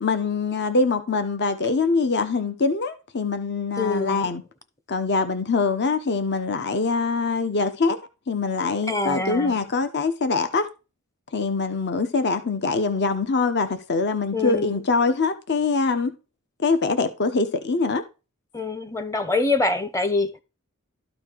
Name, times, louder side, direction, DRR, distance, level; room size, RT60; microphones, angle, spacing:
voice 1, 0.0-4.4 4.9-8.0 8.3-10.7 11.3-16.1 16.6-18.0, left 4 dB, 50° left, 0.9 m, -23 dB
voice 2, 3.8-4.3 8.9-9.6 14.3-14.8 18.5-20.4, left 3 dB, 15° left, 0.9 m, -25 dB
12.5 x 4.4 x 4.6 m
head